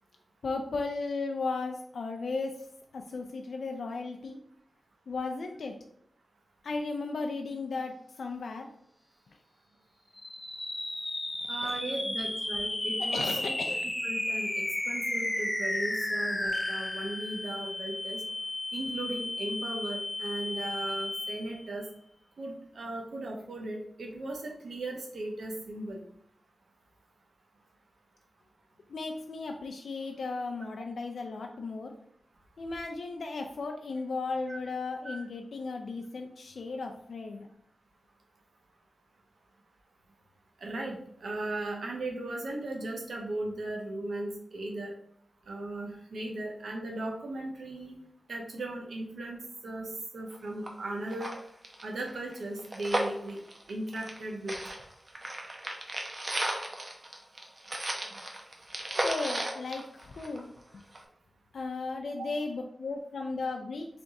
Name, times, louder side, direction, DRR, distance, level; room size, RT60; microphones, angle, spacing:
voice 1, 0.4-2.5 2.9-4.4 5.1-5.7 6.6-8.7 11.6-11.7 13.0-13.8 28.9-31.9 32.6-37.5 59.0-60.5 61.5-63.9, left 3 dB, 85° left, 3 dB, 0.4 m, -35 dB
sound 1, 10.2-21.7, left 1 dB, 25° left, 0.6 m, -33 dB
voice 2, 11.5-13.5 14.0-18.2 18.7-21.9 22.4-26.0 34.5-34.6 35.0-35.2 40.6-44.9 45.5-47.9 48.3-49.4 49.6-51.3 51.8-53.4 53.7-54.6 62.0-62.3, right 2 dB, 85° right, 1 dB, 0.7 m, -37 dB
sound 2, 50.3-50.4 50.7-50.8 51.1-54.2 54.5-60.6 60.9-61.0, right 1 dB, 40° right, 0.9 m, -34 dB
3.5 x 3.4 x 4.0 m, 0.67 s
cardioid pair, 60°, 0 cm